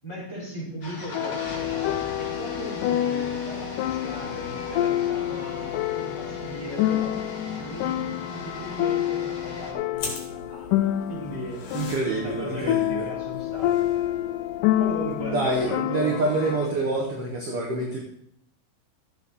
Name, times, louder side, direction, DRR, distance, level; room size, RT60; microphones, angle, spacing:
voice 1, 0.0-7.1 7.5-11.8 12.1-13.7 14.8-17.0, equal, 5° left, -6 dB, 4.8 m, -37 dB
sound 1, 0.8-9.7, left 1 dB, 40° left, 2.1 m, -39 dB
sound 2, 1.1-16.7, left 13 dB, 85° left, 1.8 m, -28 dB
sound 3, 9.9-15.7, left 3 dB, 60° left, 3.5 m, -41 dB
voice 2, 11.7-13.1 15.3-18.0, right 2 dB, 50° right, -1 dB, 2.0 m, -26 dB
13.0 x 8.2 x 4.2 m, 0.69 s
omnidirectional pair, 4.1 m